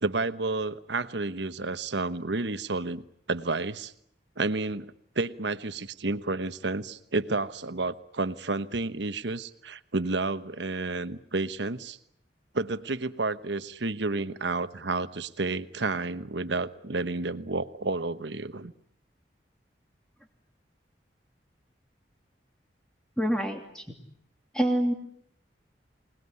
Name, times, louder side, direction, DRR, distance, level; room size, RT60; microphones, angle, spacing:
voice 1, 0.0-3.0 3.3-3.9 4.4-12.0 12.5-18.7, right 3 dB, 75° right, 12 dB, 1.2 m, -31 dB
voice 2, 23.2-23.8 24.5-24.9, equal, 5° left, 4 dB, 3.1 m, -26 dB
26.5 x 19.5 x 9.7 m, 0.73 s
head